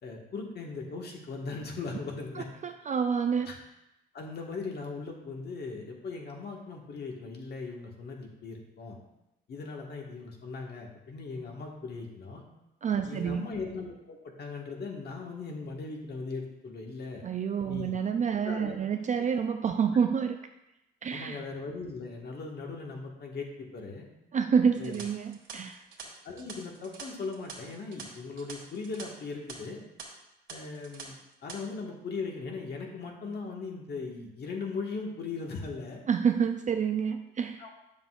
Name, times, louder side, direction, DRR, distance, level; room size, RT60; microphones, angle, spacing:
voice 1, 0.0-2.5 3.5-3.6 4.1-9.0 9.5-12.4 13.0-17.2 17.7-17.9 18.4-18.9 21.1-24.1 24.8-25.0 26.2-29.8 30.5-36.0 37.6-37.7, left 4 dB, 55° left, 0 dB, 1.6 m, -39 dB
voice 2, 2.3-3.5 12.8-13.5 17.2-20.4 21.0-21.4 24.3-25.9 36.1-37.7, right 7 dB, 40° right, 6 dB, 0.4 m, -28 dB
sound 1, 24.7-29.0 29.3-29.5 30.0-30.1 30.5-31.0 31.3-31.6, right 5 dB, 70° right, 1.7 m, -45 dB
8.0 x 6.9 x 2.4 m, 0.92 s
cardioid pair, 90°, 20 cm